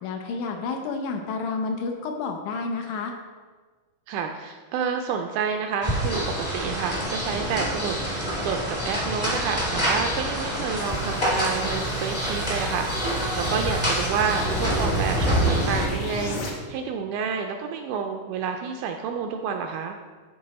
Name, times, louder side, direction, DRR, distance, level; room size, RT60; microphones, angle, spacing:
voice 1, 0.0-3.1, left 4 dB, 75° left, 4 dB, 2.1 m, -30 dB
voice 2, 4.1-20.0, right 6 dB, 80° right, 4 dB, 1.8 m, -29 dB
sound 1, 5.8-15.9, equal, 20° left, 0.7 m, -26 dB
sound 2, 10.3-16.5, equal, 60° left, 1.7 m, -35 dB
11.0 x 4.7 x 4.1 m, 1.4 s
omnidirectional pair, 3.9 m